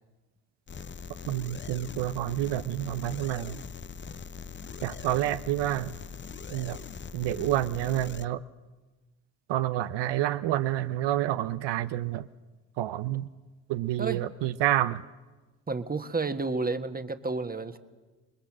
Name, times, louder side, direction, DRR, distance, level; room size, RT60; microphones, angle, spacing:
sound 1, 0.7-8.3, left 6 dB, 25° left, 0.7 m, -42 dB
voice 1, 1.3-3.6 4.8-6.0 6.5-6.8 7.1-8.4 9.5-12.3 12.8-13.3 13.7-15.0, right 13 dB, 80° right, 12 dB, 0.7 m, -28 dB
voice 2, 15.7-17.8, right 3 dB, 20° right, 9 dB, 1.5 m, -31 dB
26.5 x 21.0 x 7.4 m, 1.2 s
supercardioid pair, 65°, 42 cm